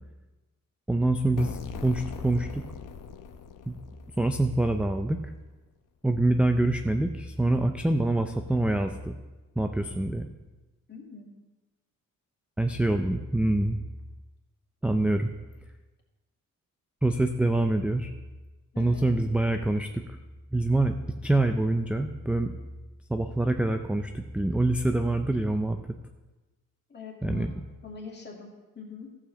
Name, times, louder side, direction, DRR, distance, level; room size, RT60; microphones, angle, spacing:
voice 1, 0.9-2.6 3.7-3.8 4.2-5.3 6.0-9.2 9.6-10.3 12.6-13.8 14.8-15.3 17.0-18.1 18.8-20.0 20.5-20.9 21.2-22.5 23.1-25.8 27.2-27.5, right 2 dB, 5° right, 6 dB, 0.4 m, -25 dB
sound 1, 1.4-5.0, left 6 dB, 70° left, 0.9 m, -41 dB
voice 2, 10.9-11.3 15.0-15.1 18.7-19.1 26.9-27.5 27.8-29.2, left 5 dB, 30° left, -1 dB, 2.3 m, -43 dB
14.0 x 5.0 x 6.9 m, 1.1 s
wide cardioid pair, 160°, 33 cm